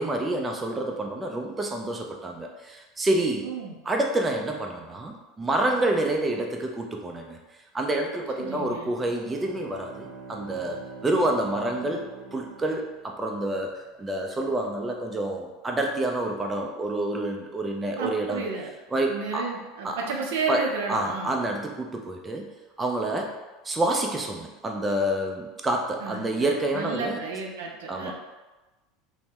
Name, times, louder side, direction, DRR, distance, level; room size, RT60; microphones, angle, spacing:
voice 1, 0.0-3.5 3.8-7.4 7.7-18.4 18.9-19.5 19.8-20.0 20.5-20.6 20.9-22.5 22.8-23.3 23.6-27.2 27.9-28.1, right 1 dB, 15° right, 2 dB, 0.4 m, -28 dB
voice 2, 3.4-3.7 8.4-8.9 18.0-18.7 19.1-21.4 26.0-28.1, right 4 dB, 85° right, 1 dB, 0.5 m, -32 dB
Bowed string instrument, 8.9-13.5, right 4 dB, 50° right, 0.8 m, -44 dB
2.7 x 2.0 x 3.3 m, 1.1 s
supercardioid pair, 110°, 0 cm